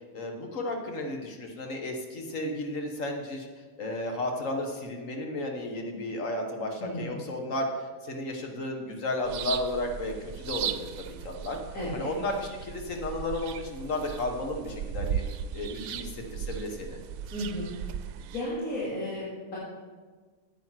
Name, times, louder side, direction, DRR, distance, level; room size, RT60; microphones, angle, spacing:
voice 1, 0.1-3.5 3.8-7.7 8.0-11.6 11.9-15.2 15.5-17.0, left 2 dB, 65° left, 3 dB, 1.7 m, -33 dB
voice 2, 6.8-7.2 10.6-10.7 11.7-12.1 17.3-17.9 18.3-19.6, left 1 dB, 85° left, -9 dB, 3.0 m, -34 dB
sound 1, 9.2-18.4, right 9 dB, 80° right, 1.0 m, -37 dB
9.3 x 8.4 x 5.8 m, 1.4 s
omnidirectional pair, 1.5 m